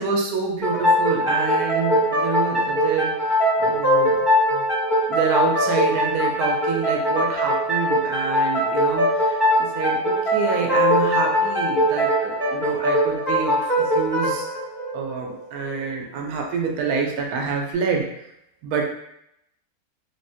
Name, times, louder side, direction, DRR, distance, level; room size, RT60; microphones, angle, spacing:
voice 1, 0.0-3.3 3.6-4.6 5.1-14.5 14.9-18.1 18.6-18.8, right 5 dB, 90° right, 1 dB, 1.1 m, -27 dB
sound 1, 0.6-16.0, equal, 20° left, 0.7 m, -21 dB
3.5 x 2.0 x 2.6 m, 0.77 s
omnidirectional pair, 1.6 m